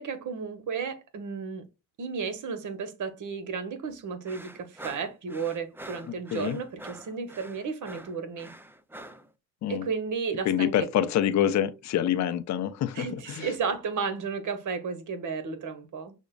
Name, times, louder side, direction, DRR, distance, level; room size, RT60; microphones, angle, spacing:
voice 1, 0.0-1.7 2.0-8.5 9.7-10.7 12.9-16.1, right 5 dB, 50° right, 1.1 m, -33 dB
sound 1, 4.3-9.3, right 1 dB, 5° right, 0.4 m, -45 dB
voice 2, 10.4-13.5, left 10 dB, 45° left, 0.6 m, -26 dB
6.1 x 2.1 x 2.3 m
supercardioid pair, 75°, 40 cm